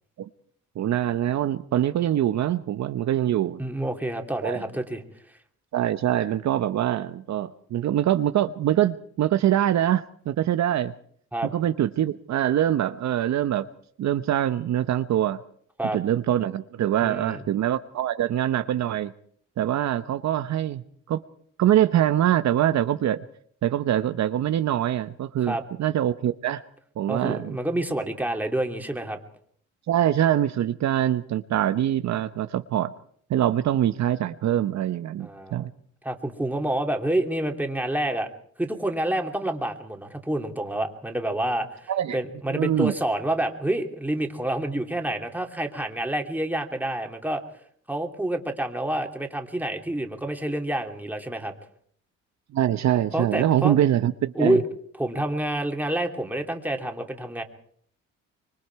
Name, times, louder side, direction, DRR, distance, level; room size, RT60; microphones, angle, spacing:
voice 1, 0.8-3.6 4.4-4.6 5.7-10.9 11.5-13.7 14.0-15.4 15.9-19.1 19.6-20.8 21.1-21.2 21.6-23.2 23.6-26.6 27.0-27.6 29.9-32.9 33.3-35.7 41.9-42.2 42.5-42.9 52.5-54.6, right 11 dB, 65° right, 10 dB, 0.9 m, -24 dB
voice 2, 3.6-5.0 11.3-11.5 15.8-16.0 17.0-17.4 25.4-25.6 27.1-29.2 35.2-35.7 36.0-38.3 38.6-47.4 47.9-51.5 53.1-53.8 54.3-54.6 55.0-57.4, right 1 dB, 5° right, 3 dB, 2.9 m, -28 dB
25.0 x 22.5 x 4.7 m, 0.62 s
cardioid pair, 90°, 30 cm